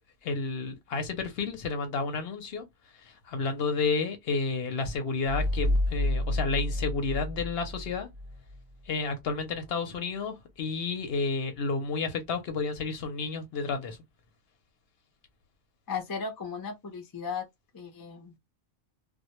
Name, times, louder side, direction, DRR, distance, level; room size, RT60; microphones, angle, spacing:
voice 1, 0.2-8.1 8.8-14.0, left 4 dB, 60° left, 0.8 m, -31 dB
sound 1, 5.2-8.6, left 1 dB, 55° right, 0.5 m, -30 dB
voice 2, 15.9-17.4 17.7-18.4, left 5 dB, 30° left, 0.4 m, -36 dB
2.1 x 2.1 x 2.8 m
omnidirectional pair, 1.2 m